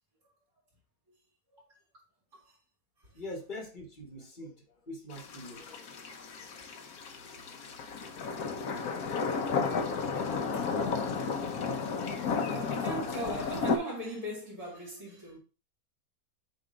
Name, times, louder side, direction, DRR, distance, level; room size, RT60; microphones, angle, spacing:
voice 1, 3.1-6.5, left 1 dB, 35° left, 1.2 m, -44 dB
sound 1, 5.1-13.8, left 5 dB, 85° left, 1.4 m, -33 dB
voice 2, 11.8-15.4, right 1 dB, 55° right, 3.4 m, -40 dB
7.9 x 2.7 x 5.0 m
omnidirectional pair, 1.5 m